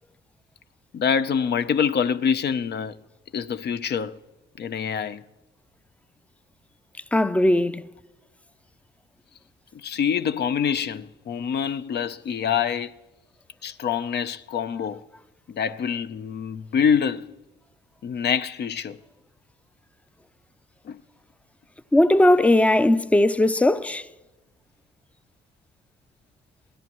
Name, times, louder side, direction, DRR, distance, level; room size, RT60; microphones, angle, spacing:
voice 1, 0.9-2.9 3.3-4.2 4.6-5.2 9.7-12.9 13.6-15.0 15.5-17.3 18.0-19.0 20.8-21.0, left 7 dB, 55° left, 0.7 m, -25 dB
voice 2, 7.1-7.8 21.9-24.0, left 1 dB, 5° left, 0.5 m, -18 dB
23.0 x 16.5 x 3.1 m
cardioid pair, 90°, 20 cm